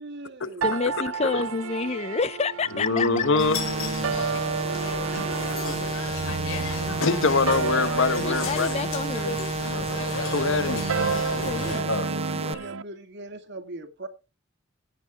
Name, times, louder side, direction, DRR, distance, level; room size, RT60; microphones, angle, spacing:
voice 1, 0.0-0.7 9.8-9.9 10.3-14.1, right 2 dB, 60° right, 2.0 m, -40 dB
voice 2, 0.6-3.3 8.2-9.4 11.4-11.9, left 4 dB, 30° left, 0.5 m, -28 dB
sound 1, 0.6-12.8, right 6 dB, 85° right, 0.6 m, -32 dB
voice 3, 2.7-3.6 4.1-4.3 7.0-8.8 9.6-9.7 10.3-10.8 11.9-12.1 12.4-12.6, left 4 dB, 65° left, 1.0 m, -24 dB
sound 2, 3.4-11.8, left 3 dB, 85° left, 3.0 m, -33 dB
sound 3, 3.5-12.5, right 3 dB, 30° right, 0.8 m, -31 dB
17.0 x 8.7 x 3.6 m
head